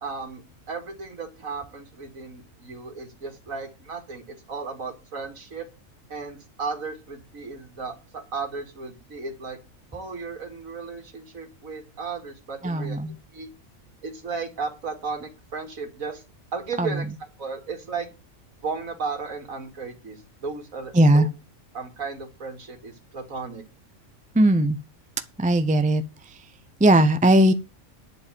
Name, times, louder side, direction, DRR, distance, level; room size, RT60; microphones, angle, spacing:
voice 1, 0.0-5.7 6.1-9.6 9.9-13.0 13.3-13.5 14.0-16.2 16.5-18.1 18.6-21.3 21.7-23.6, right 4 dB, 80° right, 2.7 m, -35 dB
voice 2, 12.6-13.1 16.8-16.9 20.9-21.3 24.3-24.8 25.4-26.0 26.8-27.5, right 1 dB, 10° right, 0.4 m, -18 dB
11.0 x 5.3 x 7.7 m
omnidirectional pair, 1.4 m